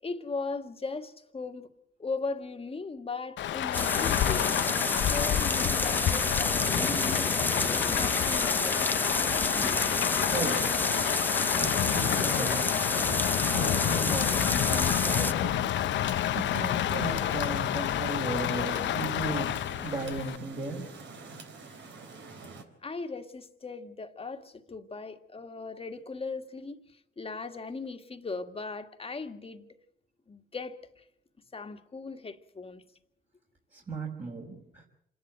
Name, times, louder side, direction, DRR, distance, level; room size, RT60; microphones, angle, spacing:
voice 1, 0.0-1.7 2.0-4.5 4.9-7.3 7.9-8.8 22.8-29.7 30.3-31.0 31.5-32.8, left 4 dB, 30° left, 1.8 m, -38 dB
Rain, 3.4-20.4, left 12 dB, 70° left, 0.7 m, -29 dB
sound 1, 3.7-15.3, left 2 dB, 10° left, 0.9 m, -29 dB
voice 2, 10.2-10.7 11.5-15.9 16.3-19.5 19.8-20.9 33.7-34.9, right 3 dB, 40° right, 4.3 m, -36 dB
sound 2, 15.0-22.6, right 3 dB, 70° right, 3.8 m, -46 dB
27.5 x 11.0 x 9.2 m
cardioid pair, 90°, 20 cm